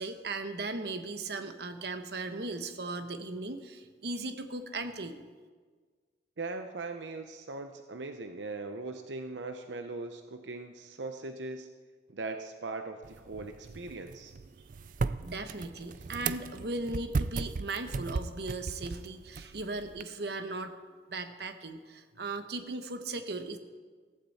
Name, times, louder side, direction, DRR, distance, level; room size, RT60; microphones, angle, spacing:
voice 1, 0.0-5.2 15.0-20.8 21.1-23.6, right 2 dB, 65° right, 8 dB, 1.0 m, -37 dB
voice 2, 6.4-11.7 12.1-14.3 16.0-16.1, right 3 dB, 85° right, 6 dB, 0.8 m, -40 dB
sound 1, 13.0-20.0, right 4 dB, 45° right, 0.4 m, -37 dB
15.0 x 15.0 x 4.3 m, 1.5 s
head